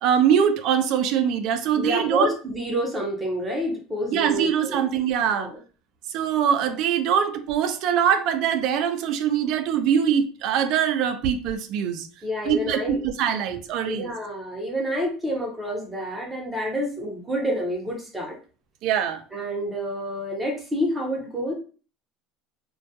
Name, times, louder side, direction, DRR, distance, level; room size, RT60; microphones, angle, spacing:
voice 1, 0.0-2.3 4.1-5.5 6.1-12.1 12.5-14.1 18.8-19.2, right 8 dB, 60° right, 0.4 m, -23 dB
voice 2, 1.7-4.8 5.3-5.6 12.2-13.0 13.9-18.3 19.3-21.5, equal, 10° right, 0.6 m, -28 dB
2.2 x 2.2 x 2.7 m
supercardioid pair, 125°, 0 cm